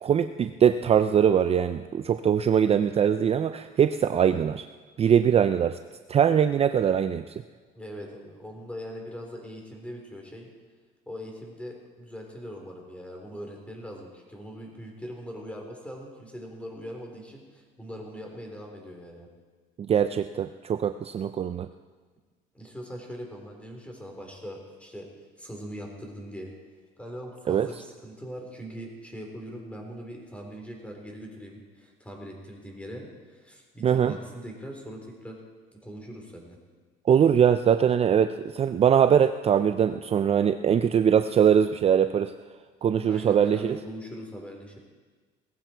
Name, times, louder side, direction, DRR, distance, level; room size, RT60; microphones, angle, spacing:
voice 1, 0.0-4.6 5.0-5.8 6.1-7.2 19.8-21.7 27.5-27.7 33.8-34.1 37.1-42.3 42.8-43.8, right 8 dB, 35° right, 10 dB, 0.5 m, -22 dB
voice 2, 7.7-10.5 11.1-19.3 22.5-25.1 25.4-26.5 27.0-35.4 35.8-36.6 43.1-44.8, equal, 5° left, 1 dB, 4.0 m, -41 dB
18.0 x 15.0 x 4.6 m, 1.4 s
cardioid pair, 110°, 17 cm